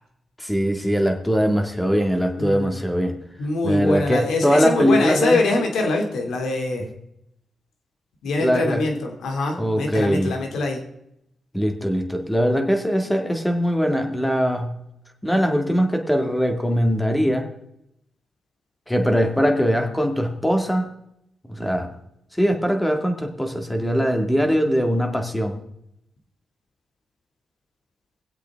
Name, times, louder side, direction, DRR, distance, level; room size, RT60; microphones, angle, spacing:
voice 1, 0.4-3.2 3.6-5.4 8.4-8.8 9.6-10.4 11.5-14.8 15.2-17.5 18.9-20.9 21.5-21.9 22.4-25.6, equal, 10° left, 4 dB, 2.0 m, -21 dB
voice 2, 2.4-2.8 3.4-6.9 8.2-10.8, left 2 dB, 85° left, 3 dB, 2.5 m, -24 dB
21.0 x 8.0 x 3.6 m, 0.79 s
cardioid pair, 75°, 0 cm